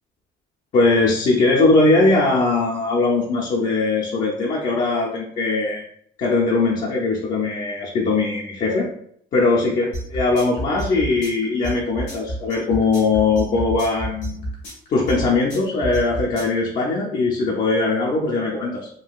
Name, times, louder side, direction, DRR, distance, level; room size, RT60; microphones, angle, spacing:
voice 1, 0.7-5.8 6.2-8.9 9.3-14.4 14.9-18.9, left 3 dB, 50° left, -3 dB, 0.6 m, -20 dB
sound 1, 9.9-16.6, right 1 dB, 80° left, 1.2 m, -29 dB
3.7 x 2.3 x 2.3 m, 0.67 s
cardioid pair, 110°, 17 cm